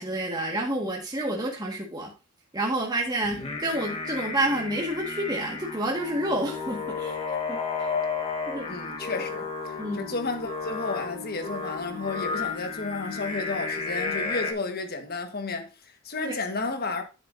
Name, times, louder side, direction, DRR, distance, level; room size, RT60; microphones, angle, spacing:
voice 1, 0.0-2.1 2.5-7.2 7.5-7.9 8.5-8.8 9.8-10.1 16.2-16.4, right 1 dB, 20° right, 1.7 m, -29 dB
Singing, 3.2-14.5, left 4 dB, 30° left, 1.2 m, -33 dB
voice 2, 8.6-17.0, left 3 dB, 50° left, 1.4 m, -32 dB
10.5 x 6.9 x 2.6 m
head